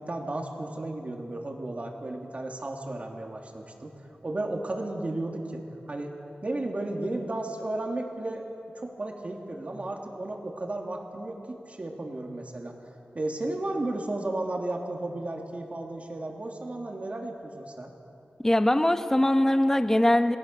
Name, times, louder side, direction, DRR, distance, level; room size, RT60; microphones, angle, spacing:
voice 1, 0.0-3.9 4.2-5.6 5.9-6.2 6.4-8.4 8.8-12.7 13.1-17.9, right 2 dB, 40° right, 1 dB, 3.0 m, -34 dB
voice 2, 18.4-20.4, left 1 dB, 15° left, 8 dB, 1.2 m, -22 dB
28.5 x 19.0 x 6.9 m, 2.8 s
wide cardioid pair, 85°, 3 cm